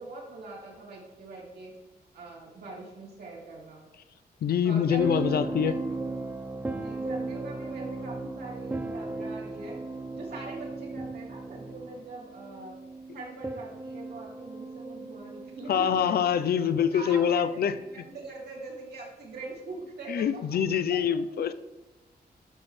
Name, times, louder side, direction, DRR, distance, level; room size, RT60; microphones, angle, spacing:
voice 1, 0.0-1.7 2.1-3.8 4.6-5.3 5.6-6.0 6.6-9.8 10.1-12.8 13.1-17.6 17.9-20.6 20.9-21.2, right 2 dB, 75° right, -3 dB, 2.7 m, -42 dB
voice 2, 4.4-5.7 15.7-17.7 20.1-21.5, left 8 dB, 65° left, 12 dB, 0.5 m, -25 dB
sound 1, 5.0-16.7 17.6-17.9, right 2 dB, 10° right, 0.3 m, -36 dB
12.0 x 6.2 x 3.3 m, 1.1 s
wide cardioid pair, 175°, 17 cm